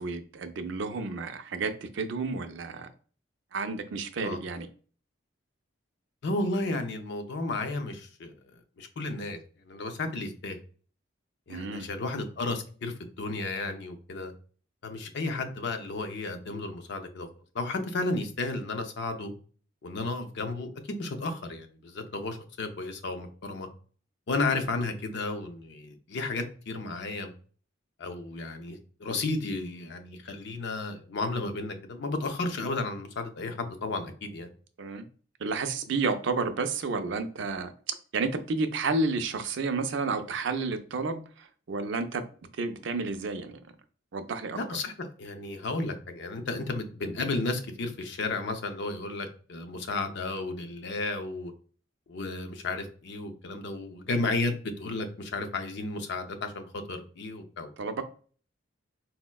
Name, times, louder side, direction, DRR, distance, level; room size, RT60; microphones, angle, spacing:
voice 1, 0.0-2.9 3.5-4.7 11.5-11.9 34.8-35.0 35.4-42.2 42.6-43.6 44.1-44.6 57.8-58.0, right 4 dB, 70° right, 0.4 m, -31 dB
voice 2, 6.2-8.3 8.8-9.4 9.7-10.6 11.5-14.3 14.8-17.3 17.5-19.3 19.8-23.7 24.3-27.3 28.0-34.5 44.5-51.5 52.1-56.6 56.9-57.7, left 3 dB, 65° left, 0.5 m, -33 dB
4.3 x 2.0 x 2.2 m
head